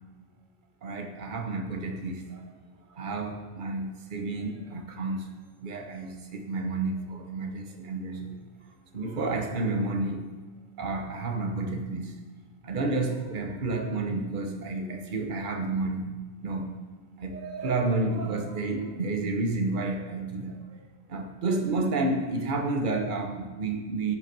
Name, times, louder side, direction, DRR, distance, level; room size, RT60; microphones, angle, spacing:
voice 1, 0.8-2.5 2.9-5.3 5.6-8.3 8.9-10.3 10.8-12.2 12.6-16.1 16.4-16.7 17.2-20.8 21.1-24.2, right 3 dB, 45° right, 4 dB, 1.2 m, -30 dB
16.5 x 5.6 x 6.0 m, 1.3 s
omnidirectional pair, 1.2 m